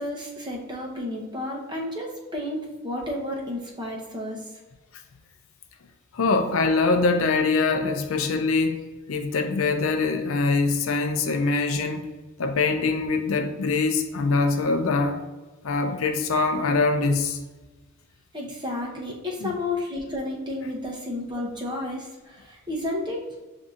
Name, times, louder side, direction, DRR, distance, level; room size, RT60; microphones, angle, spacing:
voice 1, 0.0-4.4 18.3-23.2, left 1 dB, 20° right, -1 dB, 0.7 m, -32 dB
voice 2, 6.1-12.1 12.4-15.2 15.6-17.4 19.4-19.5, left 3 dB, 70° left, 5 dB, 0.5 m, -23 dB
7.2 x 2.7 x 2.4 m, 1.2 s
head